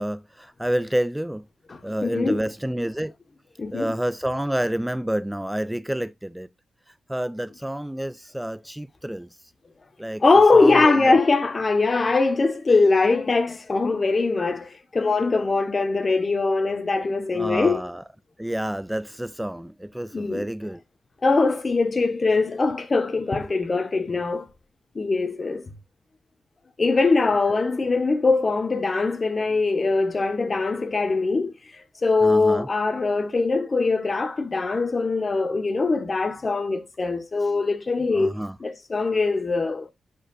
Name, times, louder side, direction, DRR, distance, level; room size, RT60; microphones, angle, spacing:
voice 1, 0.0-1.4 1.8-3.1 3.7-6.5 7.1-9.3 10.0-10.2 10.5-11.2 17.3-18.0 18.4-20.8 32.2-32.7 38.1-38.6, right 1 dB, 5° right, 0.3 m, -29 dB
voice 2, 1.7-2.4 3.6-3.9 10.2-17.8 20.1-20.5 21.2-24.5 24.9-25.7 26.8-38.3 38.6-39.9, left 3 dB, 45° left, 1.5 m, -22 dB
11.0 x 4.9 x 2.6 m
supercardioid pair, 45°, 0 cm